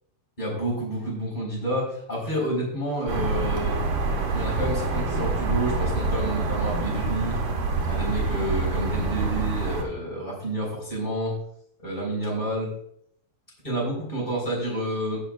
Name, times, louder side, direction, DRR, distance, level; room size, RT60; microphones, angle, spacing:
voice 1, 0.4-3.7 4.3-7.4 7.9-11.3 11.8-12.7 13.6-15.2, right 1 dB, 10° left, -4 dB, 4.0 m, -29 dB
sound 1, 3.1-9.8, right 3 dB, 80° right, 1.2 m, -26 dB
18.5 x 6.5 x 2.4 m, 0.69 s
omnidirectional pair, 4.8 m